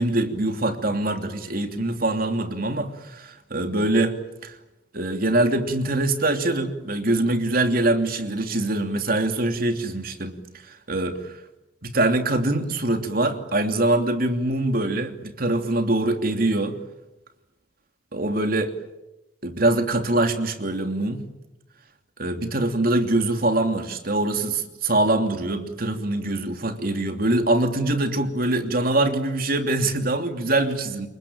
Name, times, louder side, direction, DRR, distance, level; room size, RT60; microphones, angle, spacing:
voice 1, 0.0-4.2 4.4-4.5 4.9-10.4 10.6-11.4 11.8-16.8 18.1-18.7 19.4-21.3 22.2-31.1, right 2 dB, 50° right, 6 dB, 3.0 m, -23 dB
28.0 x 23.5 x 8.9 m, 0.95 s
head